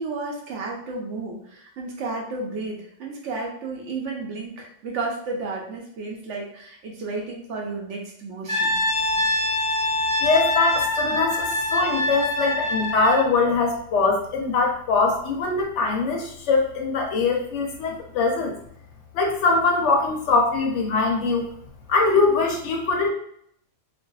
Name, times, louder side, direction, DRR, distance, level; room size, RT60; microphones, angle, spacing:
voice 1, 0.0-8.8, right 3 dB, 70° right, -1 dB, 0.9 m, -32 dB
Brass instrument, 8.5-13.3, left 1 dB, 20° right, 0.7 m, -24 dB
voice 2, 10.2-18.5 19.1-21.5 21.9-23.1, left 3 dB, 70° left, 1 dB, 0.8 m, -22 dB
2.6 x 2.3 x 2.2 m, 0.68 s
omnidirectional pair, 1.3 m